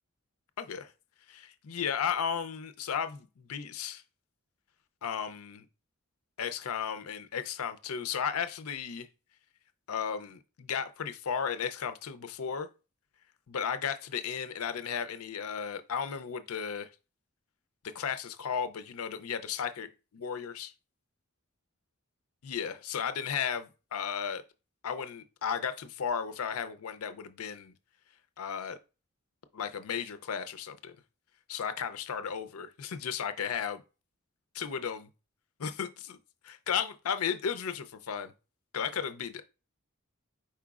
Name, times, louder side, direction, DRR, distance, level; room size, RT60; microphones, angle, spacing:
voice 1, 0.6-0.9 1.3-4.0 5.0-5.6 6.4-9.1 9.9-12.7 13.5-16.9 17.9-20.7 22.4-24.4 24.8-27.7 28.4-28.8 29.5-30.9 31.5-33.8 34.6-35.1 35.6-36.2 36.4-38.3 38.7-39.4, left 7 dB, 85° left, 0.5 m, -34 dB
4.9 x 4.4 x 2.4 m
head